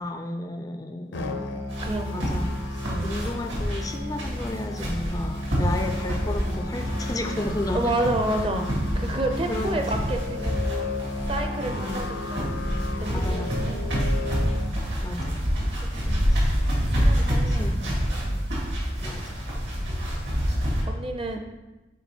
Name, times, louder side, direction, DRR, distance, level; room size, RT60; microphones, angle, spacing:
voice 1, 0.0-1.4 2.1-2.5 3.0-7.9 9.5-10.2 11.7-12.0 13.1-13.7 15.0-15.4 16.3-16.5 17.5-18.1 19.0-19.2, left 1 dB, 20° left, 5 dB, 0.3 m, -33 dB
Musical instrument, 1.1-14.7, left 2 dB, 85° left, 0.7 m, -33 dB
sound 1, 1.7-20.8, equal, 75° right, 2.3 m, -27 dB
voice 2, 1.8-2.3 2.9-3.1 7.7-10.9 11.3-12.5 13.0-14.1 14.5-14.8 15.8-16.4 16.9-17.8 18.2-18.4 20.9-21.4, right 1 dB, 30° right, 5 dB, 0.6 m, -30 dB
7.1 x 3.9 x 4.4 m, 1.1 s
head